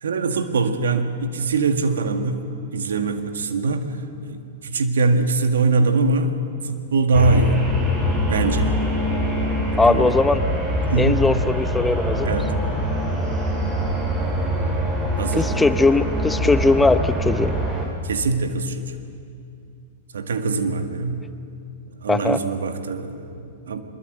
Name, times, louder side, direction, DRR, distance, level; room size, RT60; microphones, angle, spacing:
voice 1, 0.0-2.4 2.7-6.4 6.6-7.6 8.3-8.7 9.6-10.1 10.8-11.2 12.2-12.6 15.2-15.5 18.0-18.9 20.1-21.3 22.0-23.8, right 3 dB, 75° right, 6 dB, 1.9 m, -22 dB
sound 1, 7.1-17.9, equal, 25° right, 7.0 m, -23 dB
voice 2, 9.8-10.4 11.0-12.3 15.3-17.6 22.1-22.4, left 3 dB, 10° left, 11 dB, 0.8 m, -19 dB
23.0 x 22.0 x 8.1 m, 2.5 s
hypercardioid pair, 110°, 0 cm